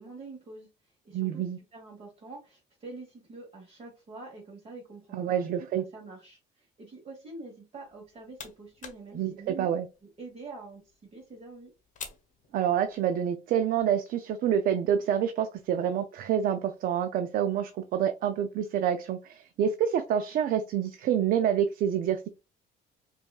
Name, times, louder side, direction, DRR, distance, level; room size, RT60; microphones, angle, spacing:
voice 1, 0.0-1.4 1.7-5.7 5.9-9.7 10.2-10.8 11.1-11.7, right 3 dB, 35° right, 1.2 m, -46 dB
voice 2, 1.1-1.6 5.1-5.8 9.1-9.9 12.5-22.3, right 9 dB, 60° right, 0.4 m, -27 dB
sound 1, 7.9-13.2, left 6 dB, 50° left, 1.0 m, -50 dB
5.0 x 2.4 x 2.3 m
cardioid pair, 110°, 17 cm